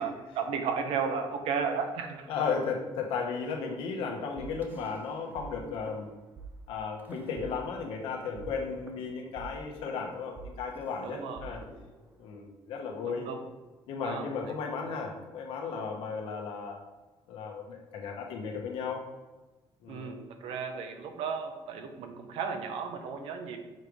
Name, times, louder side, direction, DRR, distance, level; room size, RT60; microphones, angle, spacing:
voice 1, 0.0-2.3 11.0-11.6 13.0-13.4 14.0-14.3 19.9-23.6, right 6 dB, 85° right, 6 dB, 0.9 m, -34 dB
voice 2, 2.3-6.1 6.7-11.6 12.2-13.3 13.9-16.8 17.3-19.0 19.8-20.2, left 5 dB, 85° left, 1 dB, 1.2 m, -35 dB
sound 1, 4.4-5.5 5.7-6.0 6.4-6.5 7.0-8.0 8.4-12.4, right 4 dB, 20° right, 0.7 m, -48 dB
6.5 x 3.3 x 5.2 m, 1.2 s
cardioid pair, 165°, 9 cm